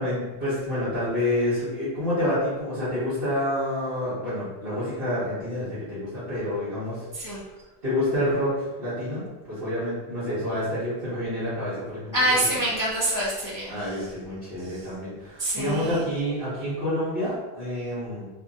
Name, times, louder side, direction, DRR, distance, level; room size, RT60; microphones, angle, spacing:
voice 1, 0.0-7.0 7.8-12.4 13.7-18.3, left 1 dB, 65° right, -13 dB, 1.3 m, -28 dB
voice 2, 12.1-13.8 15.4-16.0, right 1 dB, 30° left, -7 dB, 0.3 m, -25 dB
2.7 x 2.6 x 2.5 m, 1.2 s
omnidirectional pair, 1.0 m